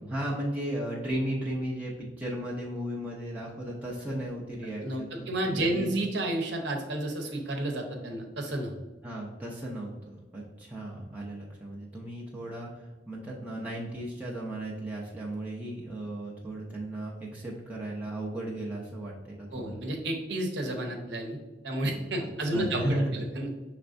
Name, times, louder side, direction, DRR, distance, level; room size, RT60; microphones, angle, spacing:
voice 1, 0.0-5.9 9.0-19.8 22.5-23.1, right 1 dB, 10° right, -4 dB, 0.6 m, -35 dB
voice 2, 4.8-8.7 19.5-21.4 21.6-23.5, right 1 dB, 70° right, 2 dB, 0.9 m, -31 dB
6.2 x 3.3 x 2.5 m, 1.1 s
head